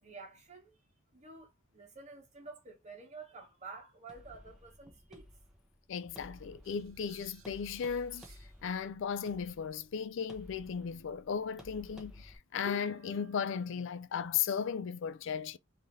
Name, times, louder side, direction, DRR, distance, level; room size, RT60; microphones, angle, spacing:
voice 1, 0.0-0.8 1.1-5.3, right 4 dB, 35° right, 1.4 m, -50 dB
sound 1, 4.1-12.4, left 1 dB, ahead, 1.0 m, -55 dB
voice 2, 5.9-8.3 8.6-15.6, left 7 dB, 65° left, 0.4 m, -36 dB
sound 2, 6.6-8.6 12.6-14.0, left 4 dB, 85° right, 0.8 m, -51 dB
3.7 x 2.8 x 3.1 m
head